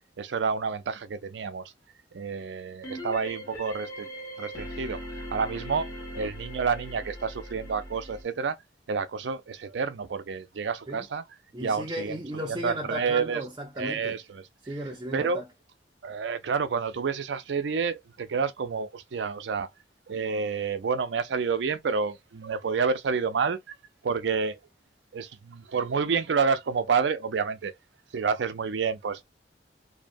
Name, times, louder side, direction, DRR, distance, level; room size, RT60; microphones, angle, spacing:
voice 1, 0.2-1.7 2.1-4.1 4.4-5.9 6.1-8.6 8.9-11.2 11.6-12.1 12.5-13.4 13.8-14.2 15.1-15.4 16.0-19.7 20.1-23.6 24.0-24.6 25.1-27.7 28.1-29.2, right 5 dB, 80° right, 0.4 m, -29 dB
sound 1, 2.8-8.2, equal, 20° left, 0.8 m, -39 dB
voice 2, 11.5-14.2 14.6-15.5, right 1 dB, 20° right, 0.5 m, -35 dB
2.6 x 2.1 x 2.5 m
head